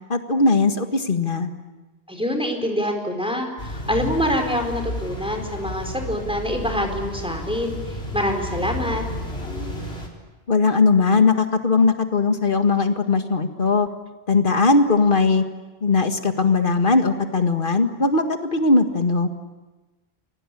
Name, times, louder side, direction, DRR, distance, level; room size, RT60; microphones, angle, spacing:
voice 1, 0.1-1.5 10.5-13.9 14.3-15.4 15.8-19.3, left 3 dB, 55° left, 7 dB, 2.0 m, -19 dB
voice 2, 2.1-9.0, equal, 5° right, 3 dB, 4.5 m, -25 dB
sound 1, 3.6-10.1, left 1 dB, 90° left, 4.5 m, -32 dB
29.5 x 23.0 x 8.6 m, 1.2 s
omnidirectional pair, 1.0 m